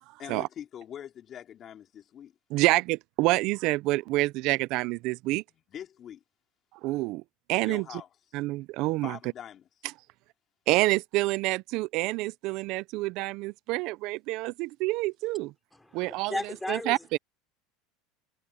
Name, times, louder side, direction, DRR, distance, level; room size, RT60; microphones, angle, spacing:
voice 1, 0.2-2.4 5.7-6.2 7.6-8.1 9.0-9.7, left 9 dB, 35° left, 3.4 m, -43 dB
voice 2, 2.5-5.4 6.8-7.2 7.5-7.8 8.3-9.2 10.7-15.5 15.9-17.2, right 20 dB, 55° right, 0.5 m, -27 dB
voice 3, 15.9-17.2, left 2 dB, 5° left, 4.1 m, -35 dB
supercardioid pair, 130°, 0 cm